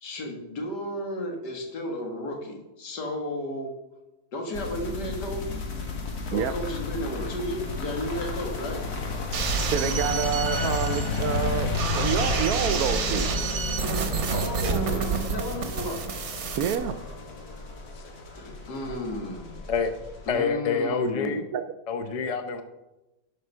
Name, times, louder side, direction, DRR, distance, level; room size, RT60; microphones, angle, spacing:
voice 1, 0.0-3.7 4.3-5.6 6.3-8.8 14.3-16.1 18.3-19.6 20.3-21.4, left 1 dB, 80° left, 2.2 m, -33 dB
sound 1, 4.5-20.4, left 4 dB, 65° left, 1.9 m, -33 dB
sound 2, 9.3-16.8, right 5 dB, 50° right, 1.1 m, -29 dB
voice 2, 9.7-13.3 16.6-17.0 21.5-21.6, right 8 dB, 70° right, 1.0 m, -28 dB
voice 3, 20.3-21.4 21.9-22.6, left 5 dB, 35° left, 0.5 m, -27 dB
11.5 x 5.0 x 5.5 m
omnidirectional pair, 1.7 m